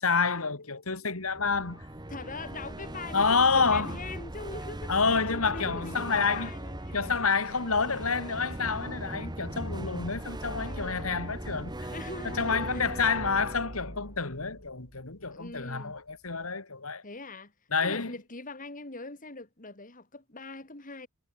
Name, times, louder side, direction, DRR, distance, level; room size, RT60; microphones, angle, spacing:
voice 1, 0.0-1.8 3.1-4.0 4.9-6.5 6.9-11.9 12.3-17.0 17.7-18.1, left 4 dB, 85° left, 2.7 m, -28 dB
sound 1, 1.2-15.3, right 1 dB, 20° right, 2.1 m, -39 dB
voice 2, 2.1-7.5 10.6-11.1 11.9-12.9 15.3-16.0 17.0-17.5 17.8-21.1, left 3 dB, 40° left, 3.1 m, -42 dB
head